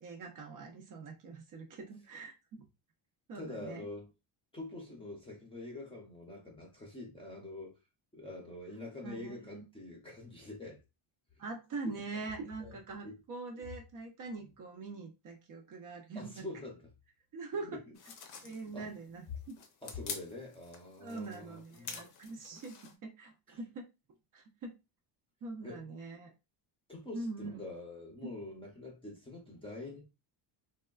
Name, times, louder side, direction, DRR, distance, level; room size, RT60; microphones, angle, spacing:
voice 1, 0.0-2.6 3.3-3.9 9.0-9.7 11.4-16.4 17.3-17.8 18.4-19.6 21.0-23.9 24.3-24.7 25.4-26.3 27.1-27.6 28.2-28.3, right 3 dB, 40° right, 0.5 m, -43 dB
voice 2, 3.3-4.1 4.5-7.8 8.1-10.8 11.8-12.2 12.6-12.8 13.0-13.2 14.4-14.5 16.1-16.8 17.7-18.0 18.4-18.9 19.8-22.0 23.5-23.6 25.6-25.9 26.9-30.0, left 2 dB, 10° left, 0.6 m, -45 dB
sound 1, 18.0-22.9, left 5 dB, 50° left, 0.7 m, -47 dB
3.4 x 2.2 x 2.3 m
cardioid pair, 170°, 48 cm